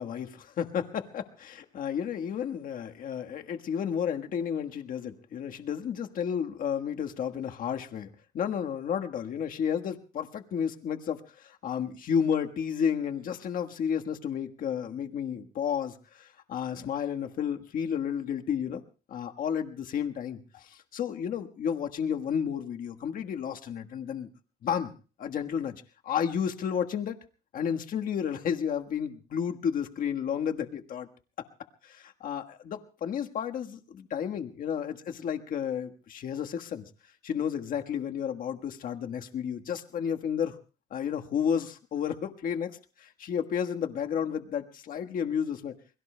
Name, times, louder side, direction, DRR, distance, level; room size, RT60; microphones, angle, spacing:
voice 1, 0.0-18.8 19.1-24.3 24.6-24.9 25.2-27.2 27.5-31.1 31.4-31.5 31.8-36.9 37.2-40.5 40.9-45.7, left 8 dB, 55° left, 5 dB, 1.4 m, -32 dB
29.0 x 21.5 x 2.2 m, 0.35 s
cardioid pair, 110°, 17 cm